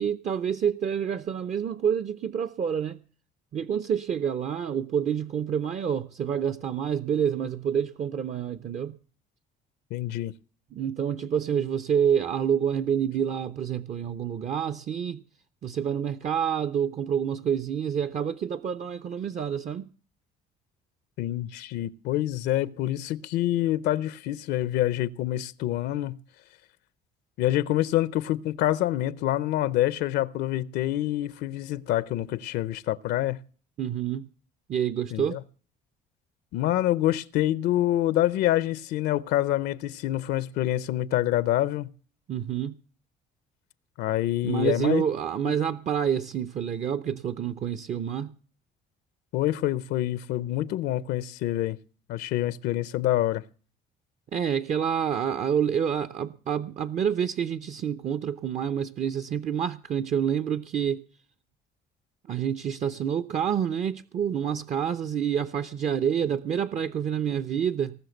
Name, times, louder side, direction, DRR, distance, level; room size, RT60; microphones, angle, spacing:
voice 1, 0.0-3.0 3.5-9.0 10.7-15.2 15.6-19.9 33.8-34.3 34.7-35.4 42.3-42.8 44.4-48.3 54.3-61.0 62.3-67.9, right 8 dB, 45° right, 0.7 m, -28 dB
voice 2, 9.9-10.3 21.2-26.2 27.4-33.4 35.1-35.4 36.5-41.9 44.0-45.0 45.5-45.6 49.3-51.8 52.1-53.4, left 14 dB, 80° left, 0.6 m, -26 dB
19.5 x 6.4 x 7.8 m
cardioid pair, 110°, 17 cm